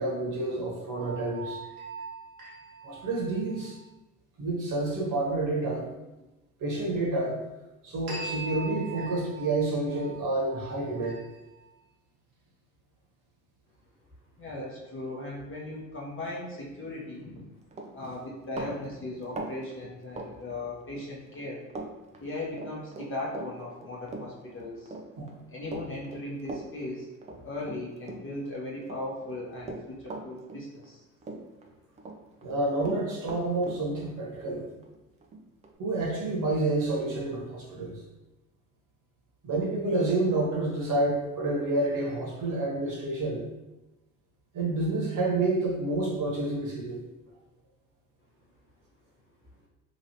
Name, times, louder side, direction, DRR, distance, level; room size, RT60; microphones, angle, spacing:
voice 1, 0.0-1.6 2.8-3.7 4.4-6.1 6.6-7.4 7.8-11.2 25.1-25.3 32.4-34.6 35.8-38.0 39.4-43.4 44.5-47.0, right 2 dB, 40° right, -3 dB, 1.2 m, -29 dB
sound 1, 1.0-3.8 8.1-11.6, right 4 dB, 80° right, 1.2 m, -41 dB
voice 2, 14.4-17.5 17.9-21.6 22.2-24.9 25.5-27.1 27.4-31.0, left 2 dB, 25° left, -4 dB, 0.9 m, -38 dB
Run, 17.2-17.4 17.7-21.1 21.3-21.9 22.1-28.5 28.8-31.0 31.2-32.2 32.4-35.7, right 2 dB, 15° right, 0.3 m, -40 dB
3.0 x 2.7 x 2.8 m, 1.0 s
hypercardioid pair, 70°, 47 cm